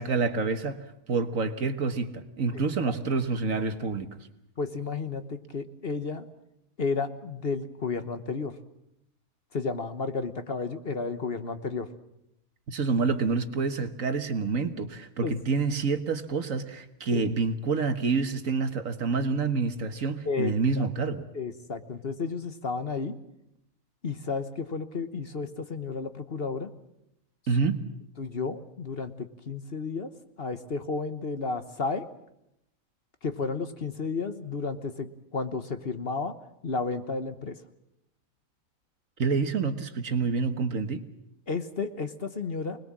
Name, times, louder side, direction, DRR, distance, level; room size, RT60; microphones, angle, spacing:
voice 1, 0.0-4.1 12.7-21.3 27.5-27.8 39.2-41.0, right 4 dB, 65° right, 9 dB, 1.8 m, -28 dB
voice 2, 4.6-6.3 6.8-8.5 9.5-11.9 15.2-15.3 17.1-17.2 20.2-20.9 21.3-23.1 24.0-26.7 28.2-30.1 30.4-32.1 33.2-36.3 36.6-37.6 41.5-42.8, left 4 dB, 45° left, 10 dB, 1.3 m, -32 dB
25.5 x 20.5 x 7.4 m, 0.81 s
omnidirectional pair, 1.5 m